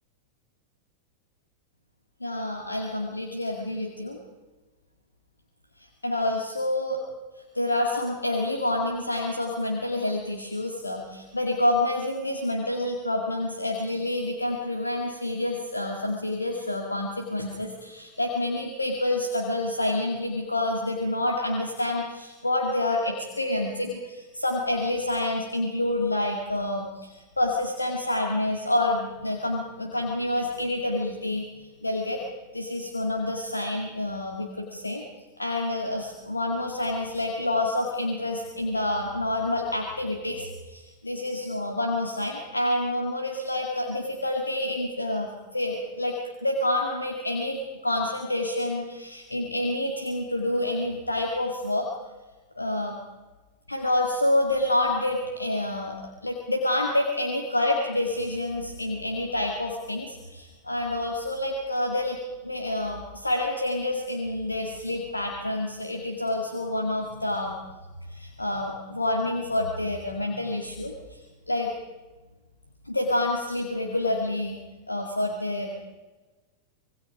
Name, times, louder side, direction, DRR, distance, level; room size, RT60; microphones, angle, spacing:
voice 1, 2.2-4.2 6.0-7.0 7.5-31.5 31.8-32.2 32.5-35.0 35.4-46.1 46.4-47.6 47.8-51.9 52.6-52.9 53.7-56.0 56.2-62.2 62.4-67.6 68.1-71.2 71.5-71.7 72.8-74.5 74.9-75.7, left 1 dB, 80° left, 1 dB, 2.2 m, -28 dB
25.5 x 22.0 x 5.1 m, 1.2 s
figure-of-eight pair, 90°, 0 cm